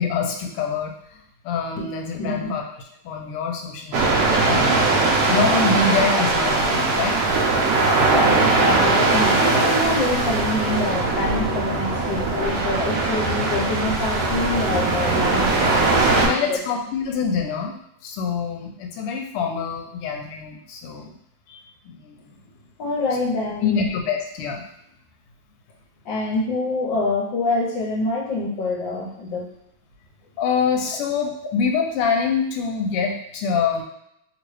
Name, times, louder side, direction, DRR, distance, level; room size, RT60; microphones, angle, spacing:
voice 1, 0.0-4.6 5.3-7.2 16.2-21.2 21.5-22.2 23.6-24.7 30.4-33.8, left 5 dB, 85° left, 2 dB, 1.5 m, -25 dB
voice 2, 2.2-2.6 8.0-16.6 22.8-23.9 26.0-29.5, left 2 dB, 70° left, -4 dB, 1.2 m, -26 dB
sound 1, 3.9-16.3, right 3 dB, 80° right, 0.8 m, -20 dB
3.3 x 3.0 x 3.1 m, 0.78 s
omnidirectional pair, 2.4 m